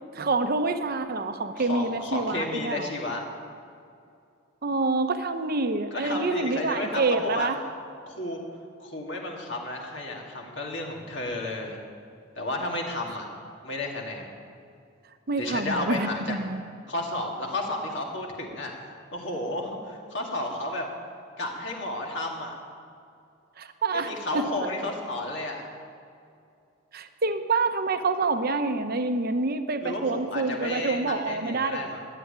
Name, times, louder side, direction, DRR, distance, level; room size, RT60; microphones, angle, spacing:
voice 1, 0.1-2.9 4.6-7.6 15.3-16.6 23.6-24.7 26.9-31.9, right 3 dB, 45° right, 8 dB, 0.8 m, -27 dB
voice 2, 1.6-3.2 5.9-7.5 8.1-8.4 8.8-11.8 12.4-13.3 13.6-14.3 15.4-16.4 16.9-18.7 19.1-20.9 21.4-22.5 23.9-25.7 29.8-32.1, left 1 dB, 60° left, 0 dB, 2.2 m, -32 dB
12.5 x 8.6 x 9.8 m, 2.5 s
head